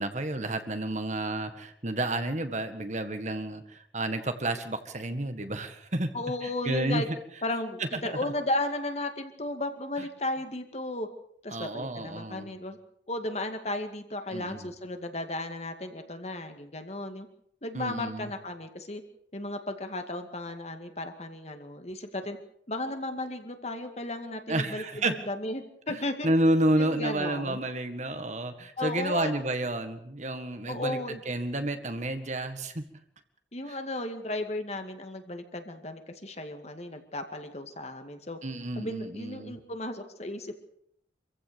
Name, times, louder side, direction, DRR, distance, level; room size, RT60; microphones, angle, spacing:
voice 1, 0.0-6.1 6.4-7.0 7.8-7.9 11.5-12.5 14.3-14.7 17.7-18.3 24.5-25.2 25.9-32.8 33.7-33.8 38.4-39.6, right 1 dB, 40° right, 8 dB, 1.7 m, -30 dB
voice 2, 6.1-7.1 7.4-11.1 11.4-12.8 13.1-17.3 17.6-19.0 19.3-22.4 22.7-26.3 26.8-27.6 28.8-29.3 30.7-31.2 33.5-38.4 38.8-40.6, left 2 dB, 35° left, 6 dB, 2.2 m, -34 dB
26.0 x 15.5 x 7.0 m, 0.69 s
head